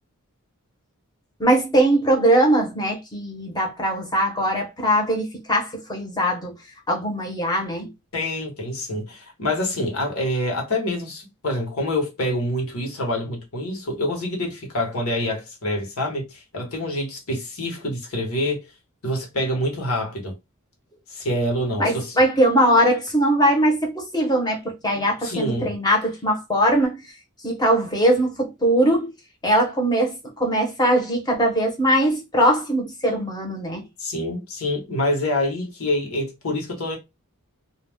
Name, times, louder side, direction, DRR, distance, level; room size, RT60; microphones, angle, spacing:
voice 1, 1.4-6.6 6.9-7.9 21.8-27.0 27.4-29.1 29.4-33.8, right 1 dB, 20° left, 0.9 m, -21 dB
voice 2, 8.1-18.6 19.0-20.4 21.1-22.1 25.2-25.7 34.0-37.0, left 1 dB, 70° left, 1.1 m, -26 dB
2.3 x 2.3 x 3.4 m
head